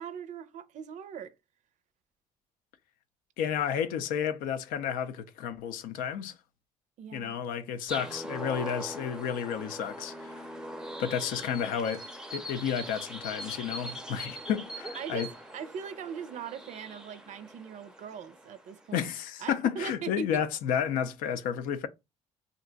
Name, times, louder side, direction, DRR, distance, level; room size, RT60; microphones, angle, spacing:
voice 1, 0.0-1.3 7.0-7.4 14.9-19.1 19.4-20.4, right 8 dB, 60° right, 0.5 m, -40 dB
voice 2, 3.4-6.4 7.1-10.4 11.0-12.0 12.3-15.3 18.9-21.9, left 8 dB, 80° left, 0.4 m, -31 dB
sound 1, 7.9-19.0, equal, 5° right, 0.5 m, -42 dB
2.5 x 2.2 x 3.8 m
supercardioid pair, 70°, 14 cm